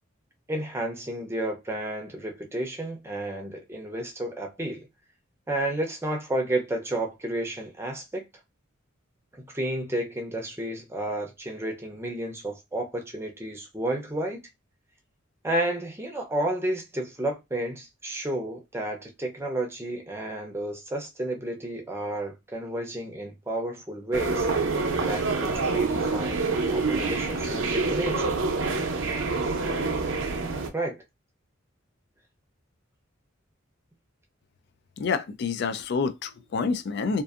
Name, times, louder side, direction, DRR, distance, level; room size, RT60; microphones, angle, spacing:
voice 1, 0.5-4.9 5.5-8.2 9.3-14.4 15.4-24.5 25.0-28.4 30.7-31.0, right 1 dB, 15° right, 0.6 m, -31 dB
sound 1, 24.1-30.7, right 3 dB, 75° right, 0.5 m, -26 dB
voice 2, 35.0-37.2, left 5 dB, 55° left, 0.4 m, -28 dB
2.6 x 2.4 x 2.4 m
head